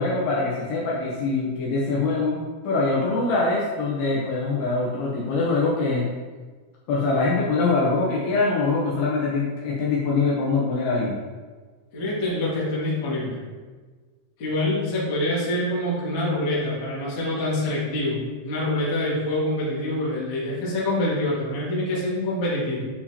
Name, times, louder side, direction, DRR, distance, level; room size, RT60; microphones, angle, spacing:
voice 1, 0.0-2.4 2.6-6.1 6.9-11.2, left 3 dB, 75° left, -4 dB, 2.5 m, -23 dB
voice 2, 11.9-13.4 14.4-22.8, left 1 dB, 50° left, -7 dB, 1.4 m, -26 dB
9.7 x 4.6 x 2.8 m, 1.4 s
omnidirectional pair, 5.3 m